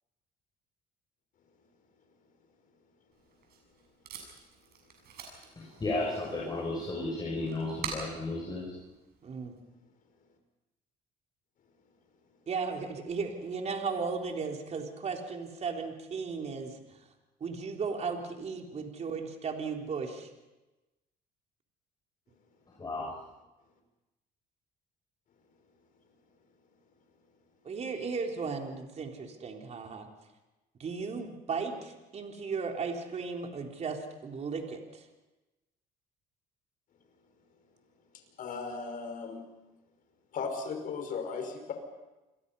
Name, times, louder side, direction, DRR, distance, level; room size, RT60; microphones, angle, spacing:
Packing tape duct tape, 3.1-9.6, right 6 dB, 70° right, 7.3 m, -46 dB
voice 1, 5.6-8.7 22.8-23.1, left 2 dB, 25° left, -4 dB, 6.7 m, -34 dB
voice 2, 9.2-9.5 12.5-17.0 17.4-20.3 27.6-30.1 30.8-35.1, right 5 dB, 40° right, 2 dB, 3.8 m, -36 dB
voice 3, 38.4-39.4 40.3-41.7, left 5 dB, 55° left, 4 dB, 5.6 m, -36 dB
29.0 x 22.0 x 5.6 m, 1.0 s
cardioid pair, 110°, 17 cm